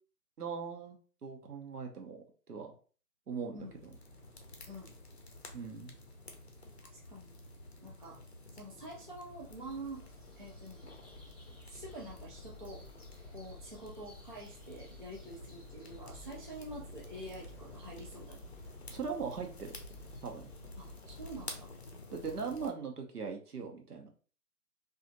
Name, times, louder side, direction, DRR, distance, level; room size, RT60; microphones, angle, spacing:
voice 1, 0.4-1.0 1.2-2.2 2.5-2.7 3.3-3.7 5.5-5.9 18.9-19.5 20.2-20.5 22.1-24.1, right 5 dB, 75° right, 3 dB, 0.9 m, -39 dB
sound 1, 3.6-21.6, left 1 dB, 20° left, 0.9 m, -56 dB
sound 2, 3.8-22.7, left 3 dB, 45° left, 0.6 m, -52 dB
voice 2, 6.8-8.2 8.5-10.1 10.4-10.9 11.7-12.8 13.3-18.5 20.8-21.7, right 1 dB, 35° right, -4 dB, 0.4 m, -47 dB
sound 3, 9.4-21.5, left 1 dB, 5° right, 0.8 m, -55 dB
2.8 x 2.4 x 2.6 m, 0.40 s
figure-of-eight pair, 150°, 46 cm